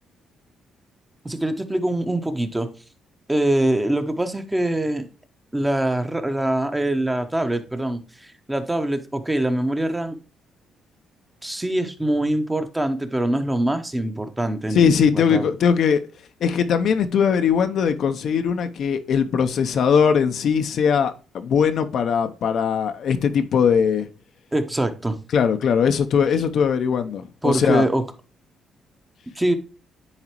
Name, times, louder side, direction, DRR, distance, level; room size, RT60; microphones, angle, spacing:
voice 1, 1.2-2.7 3.3-5.1 5.5-8.0 8.5-10.2 11.4-15.5 24.5-25.2 27.4-28.0 29.4-29.5, right 1 dB, 10° right, 0.9 m, -23 dB
voice 2, 14.7-16.0 16.4-24.1 25.3-27.8, left 7 dB, 65° left, 0.7 m, -20 dB
9.8 x 4.0 x 3.0 m
cardioid pair, 90°, 0 cm